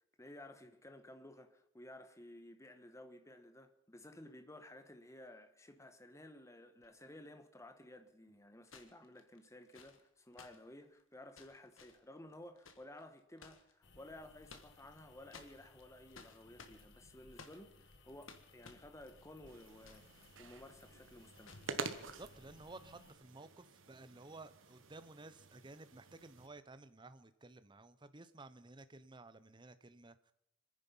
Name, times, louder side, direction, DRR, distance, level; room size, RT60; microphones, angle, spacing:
voice 1, 0.2-21.6, left 1 dB, 15° left, 1.2 m, -55 dB
sound 1, 6.8-6.9 8.6-13.7 14.2-15.0 15.3-20.3 20.5-20.6 21.4-21.7 22.7-22.9, left 5 dB, 85° left, 1.7 m, -59 dB
sound 2, 13.8-23.1, left 3 dB, 60° left, 1.3 m, -63 dB
sound 3, 19.5-26.5, right 4 dB, 75° right, 1.1 m, -49 dB
voice 2, 22.0-30.3, right 2 dB, 25° right, 0.7 m, -55 dB
26.0 x 10.0 x 5.5 m
head